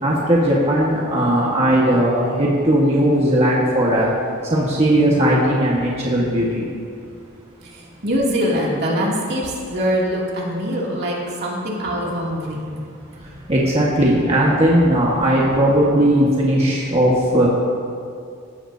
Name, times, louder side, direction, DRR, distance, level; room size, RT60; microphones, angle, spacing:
voice 1, 0.0-4.1 4.5-6.7 13.5-17.5, right 1 dB, 30° right, -5 dB, 1.6 m, -17 dB
voice 2, 7.6-12.7, equal, 50° right, -4 dB, 2.7 m, -23 dB
17.5 x 15.0 x 2.8 m, 2.4 s
head